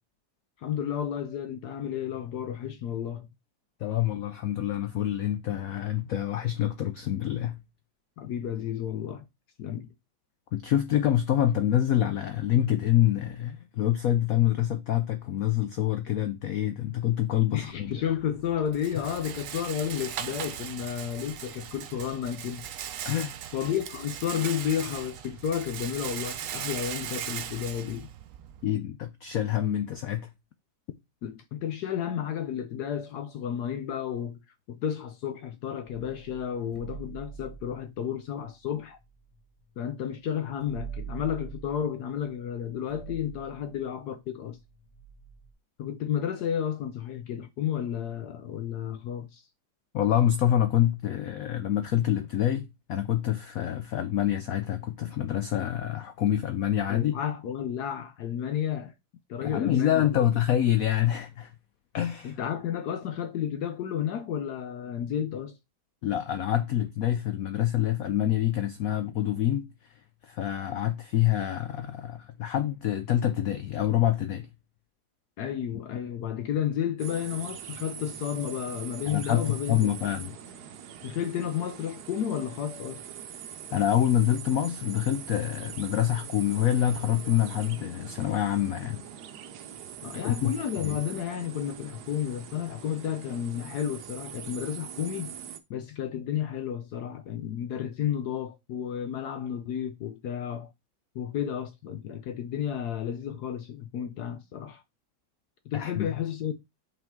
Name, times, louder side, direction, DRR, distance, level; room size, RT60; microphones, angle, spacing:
voice 1, 0.6-3.3 8.2-9.2 9.6-9.9 17.5-22.7 23.5-28.1 31.2-34.4 34.7-39.0 39.8-44.6 45.8-49.4 56.9-58.9 59.3-60.2 62.2-65.6 75.4-79.9 81.0-83.0 90.0-95.3 95.7-100.7 101.1-104.8 105.7-106.5, left 9 dB, 70° left, 1.0 m, -32 dB
voice 2, 3.8-7.6 10.5-17.9 19.0-19.1 23.0-23.4 28.6-30.3 49.9-57.1 59.4-61.5 61.9-62.4 66.0-69.7 70.2-74.5 79.1-80.4 83.7-89.1 90.1-90.5 90.8-91.0 105.7-106.1, left 11 dB, 85° left, 0.7 m, -26 dB
Rattle, 17.7-28.7, right 10 dB, 90° right, 0.7 m, -39 dB
sound 1, 35.9-39.7 40.0-40.1 40.3-45.5, right 7 dB, 30° left, 0.6 m, -45 dB
sound 2, 77.0-95.6, right 9 dB, 65° right, 1.1 m, -43 dB
5.5 x 4.9 x 3.6 m
omnidirectional pair, 2.1 m